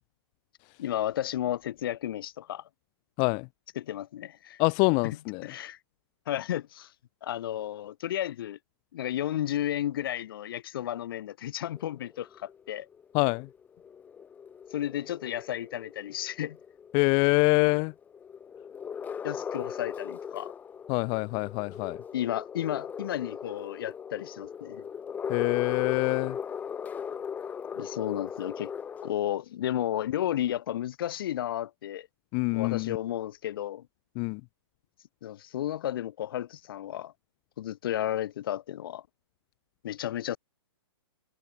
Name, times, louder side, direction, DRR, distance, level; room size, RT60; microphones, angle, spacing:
voice 1, 0.8-2.6 3.8-4.6 5.0-5.2 5.4-5.8 6.3-6.9 7.2-8.6 8.9-12.9 14.7-16.6 19.2-20.5 22.1-24.9 27.8-28.7 29.0-32.1 32.5-33.9 35.2-37.1 37.6-39.0 39.8-40.4, left 12 dB, 55° left, 5.3 m, -33 dB
voice 2, 4.6-5.4 13.1-13.5 16.9-17.9 20.9-22.0 25.3-26.4 32.3-33.0 34.1-34.4, left 36 dB, 30° left, 1.8 m, -25 dB
sound 1, 11.7-29.1, left 7 dB, 10° left, 1.7 m, -39 dB
hypercardioid pair, 155°, 14 cm